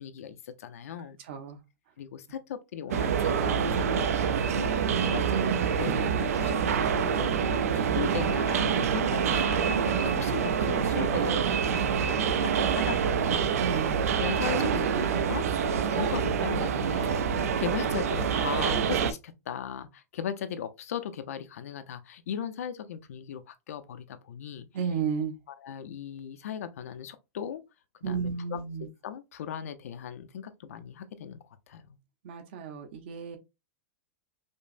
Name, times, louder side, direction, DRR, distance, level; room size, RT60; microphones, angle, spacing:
voice 1, 0.0-1.2 2.0-11.4 11.7-13.8 14.1-17.2 17.6-24.7 25.5-27.6 28.0-28.6 29.0-31.4 31.7-32.0, left 8 dB, 70° left, 0.6 m, -38 dB
voice 2, 1.3-1.6 7.6-7.8 13.6-13.9 24.7-25.3 28.0-28.9 32.2-33.4, right 6 dB, 45° right, 0.8 m, -33 dB
sound 1, 2.9-19.1, right 7 dB, 75° right, 0.5 m, -26 dB
5.2 x 2.1 x 2.5 m
supercardioid pair, 175°, 8 cm